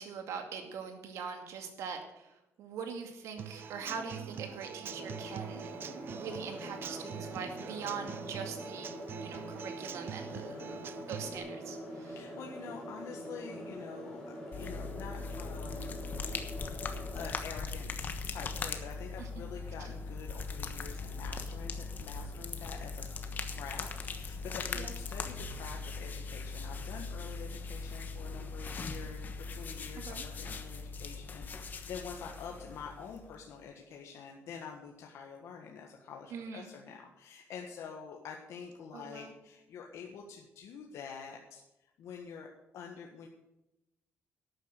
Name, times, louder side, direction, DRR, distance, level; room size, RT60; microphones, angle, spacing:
voice 1, 0.0-5.7 6.1-8.9 9.2-10.5 11.1-12.2 19.2-19.4 24.7-24.9 30.0-30.2 36.3-36.7 38.9-39.3, right 6 dB, 80° right, 5 dB, 2.3 m, -42 dB
Human voice / Acoustic guitar / Drum, 3.4-11.4, right 8 dB, 45° right, 0.7 m, -44 dB
sound 1, 4.9-17.3, equal, 15° left, 5.2 m, -44 dB
voice 2, 10.3-11.3 12.0-14.2 14.5-16.0 17.1-17.9 18.3-23.0 23.6-41.6 42.0-42.5 42.7-43.3, left 6 dB, 75° left, 1 dB, 1.6 m, -47 dB
sound 2, 14.5-33.4, left 4 dB, 35° left, 1.2 m, -40 dB
12.0 x 9.2 x 6.6 m, 0.93 s
cardioid pair, 155°, 5 cm